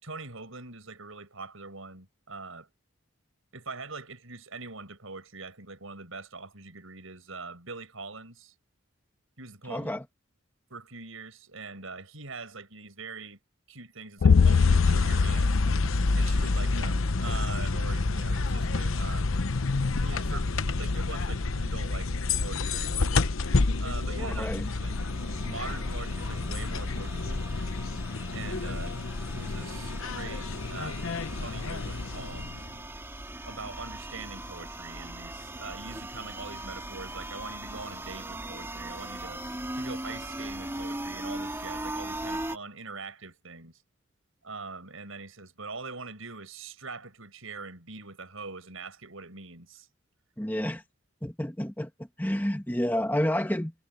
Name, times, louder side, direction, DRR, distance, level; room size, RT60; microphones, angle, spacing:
voice 1, 0.0-2.7 3.5-8.5 9.4-9.9 10.7-13.4 13.7-15.5 16.1-19.3 20.0-23.3 23.8-24.9 25.4-27.4 28.3-29.0 29.3-31.0 31.3-32.5 33.5-39.4 39.7-43.8 44.4-49.9, right 3 dB, 80° right, 6.1 m, -43 dB
voice 2, 9.7-10.0 24.2-24.7 50.4-50.8 51.2-51.9 52.2-53.7, left 1 dB, 10° left, 1.7 m, -29 dB
sound 1, 14.2-16.8, left 5 dB, 60° left, 0.4 m, -22 dB
sound 2, 14.3-32.8, left 3 dB, 80° left, 0.9 m, -29 dB
sound 3, 23.8-42.6, right 1 dB, 10° right, 2.9 m, -40 dB
head